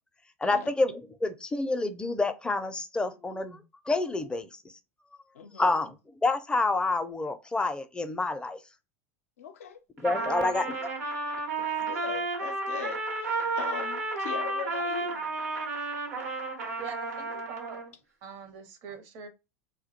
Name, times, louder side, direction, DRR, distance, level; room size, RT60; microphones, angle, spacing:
voice 1, 0.4-0.9 1.2-4.5 5.6-5.9 6.2-8.6 10.0-10.6, left 3 dB, 10° left, 0.4 m, -28 dB
voice 2, 5.3-5.8 9.4-9.8 10.1-10.6 11.6-15.3, left 7 dB, 80° left, 0.4 m, -40 dB
Trumpet, 10.0-17.9, right 2 dB, 85° right, 0.9 m, -32 dB
voice 3, 16.8-17.8 18.2-19.3, right 6 dB, 55° right, 0.7 m, -43 dB
2.2 x 2.1 x 2.8 m
hypercardioid pair, 90°, 8 cm